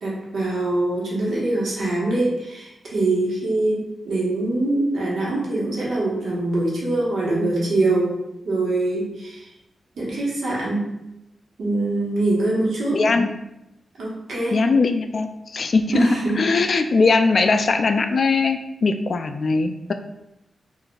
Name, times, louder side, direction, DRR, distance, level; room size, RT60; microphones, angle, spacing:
voice 1, 0.0-8.1 8.4-9.5 10.0-10.8 11.6-13.0 14.0-14.6 15.9-16.4, right 2 dB, 80° right, -6 dB, 1.2 m, -23 dB
voice 2, 12.9-13.3 14.5-16.1 16.4-19.9, left 4 dB, 60° left, 7 dB, 0.3 m, -20 dB
3.8 x 2.5 x 2.3 m, 0.87 s
cardioid pair, 60°, 0 cm